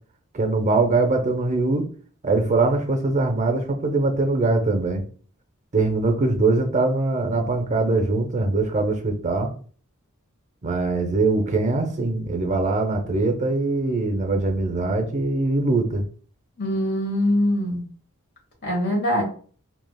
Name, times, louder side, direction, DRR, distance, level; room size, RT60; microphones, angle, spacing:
voice 1, 0.3-1.9 2.2-5.1 5.7-9.5 10.6-16.0, right 3 dB, 35° right, 4 dB, 0.6 m, -22 dB
voice 2, 16.6-17.8 18.6-19.2, left 1 dB, 50° left, -1 dB, 1.5 m, -22 dB
3.3 x 2.8 x 2.2 m, 0.43 s
head